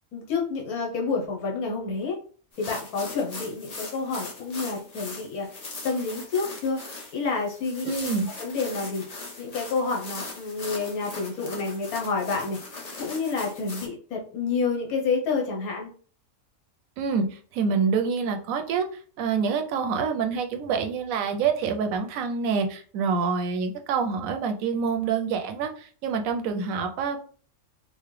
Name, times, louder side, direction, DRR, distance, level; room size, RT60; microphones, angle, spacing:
voice 1, 0.1-2.2 2.6-5.5 5.8-6.8 7.1-7.9 8.4-9.1 9.4-12.6 13.0-15.9, left 4 dB, 85° left, 0 dB, 1.3 m, -29 dB
sound 1, 2.5-13.9, left 3 dB, 35° left, 0.6 m, -40 dB
voice 2, 7.8-8.3 17.0-27.2, right 5 dB, 75° right, 5 dB, 1.0 m, -27 dB
4.2 x 2.1 x 3.2 m, 0.43 s
omnidirectional pair, 1.5 m